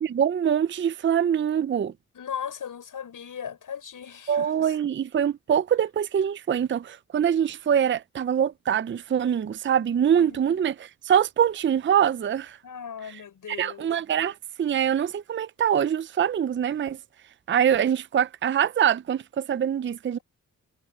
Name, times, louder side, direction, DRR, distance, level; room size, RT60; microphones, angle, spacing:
voice 1, 0.0-1.9 4.3-10.7 11.0-12.6 13.5-17.0 17.5-20.2, right 9 dB, 35° right, 0.5 m, -24 dB
voice 2, 2.1-4.7 10.2-10.6 12.6-13.9, left 8 dB, 70° left, 7.1 m, -38 dB
cardioid pair, 60°, 34 cm